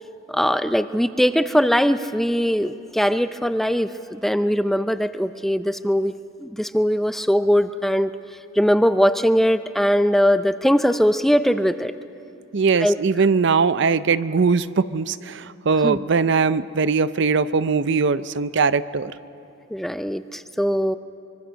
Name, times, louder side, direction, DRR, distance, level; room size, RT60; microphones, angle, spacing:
voice 1, 0.3-6.1 6.4-8.1 8.6-11.9 12.8-13.0 15.8-16.0 19.7-21.0, equal, ahead, 11 dB, 0.5 m, -20 dB
voice 2, 12.5-19.1, right 5 dB, 65° right, 14 dB, 0.6 m, -20 dB
25.0 x 23.0 x 6.3 m, 2.7 s
head